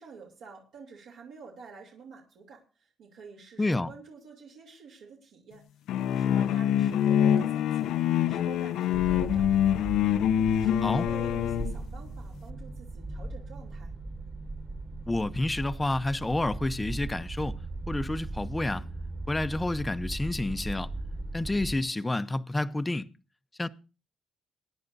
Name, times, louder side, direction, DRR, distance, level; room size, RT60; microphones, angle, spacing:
voice 1, 0.0-5.6 6.0-9.9 10.4-13.9, right 5 dB, 70° right, 3.1 m, -48 dB
voice 2, 3.6-3.9 10.8-11.1 15.1-17.6 17.9-18.9 19.3-20.9 21.3-23.1 23.6-23.7, left 2 dB, 15° left, 0.6 m, -29 dB
sound 1, 5.9-11.7, left 10 dB, 75° left, 0.5 m, -25 dB
sound 2, 8.9-21.8, right 2 dB, 25° right, 1.5 m, -38 dB
22.5 x 10.0 x 2.6 m
cardioid pair, 115°, 0 cm